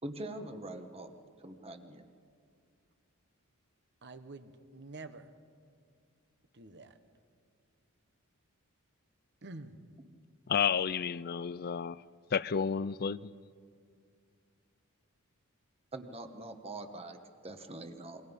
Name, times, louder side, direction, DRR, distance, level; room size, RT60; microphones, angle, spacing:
voice 1, 0.0-1.1 1.4-2.1 15.9-18.2, right 2 dB, 30° right, 1.4 m, -43 dB
voice 2, 4.0-5.3 6.5-7.0 9.4-9.8, right 2 dB, 55° right, 1.3 m, -48 dB
voice 3, 10.5-12.0 12.3-13.3, left 7 dB, 45° left, 0.4 m, -31 dB
28.0 x 22.5 x 5.5 m
head